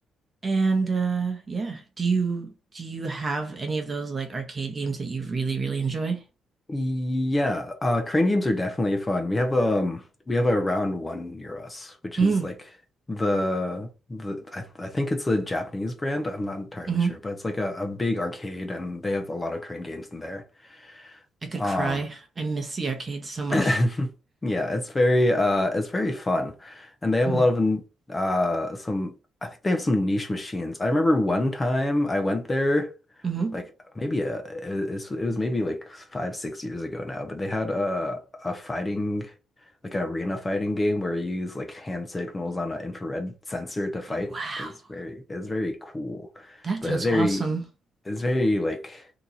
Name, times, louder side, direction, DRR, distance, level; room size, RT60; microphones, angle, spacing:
voice 1, 0.4-6.2 12.2-12.5 16.9-17.2 21.4-23.8 27.3-27.4 33.2-33.6 44.3-44.7 46.6-47.6, right 4 dB, 35° right, 0.9 m, -28 dB
voice 2, 6.7-12.5 13.1-17.0 17.2-21.2 21.5-22.0 23.5-24.1 24.4-27.8 28.1-29.1 29.4-32.9 33.5-33.6 34.0-39.3 39.8-47.4 48.1-49.1, left 1 dB, 20° left, 0.7 m, -27 dB
2.9 x 2.5 x 4.0 m
cardioid pair, 90°, 0 cm